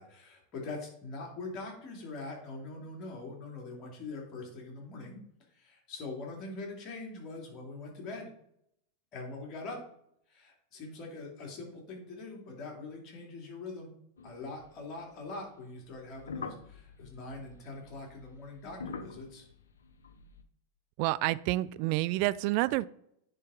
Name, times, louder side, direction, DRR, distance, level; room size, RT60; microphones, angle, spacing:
voice 1, 0.0-5.2 5.5-8.3 9.1-9.8 10.3-13.9 14.2-19.5, left 3 dB, 40° left, -1 dB, 2.9 m, -43 dB
sound 1, 14.2-15.3 15.9-20.4, left 5 dB, 75° left, 0.6 m, -46 dB
voice 2, 21.0-22.9, right 19 dB, 55° right, 17 dB, 0.3 m, -28 dB
9.9 x 4.1 x 3.8 m, 0.72 s
hypercardioid pair, 90°, 0 cm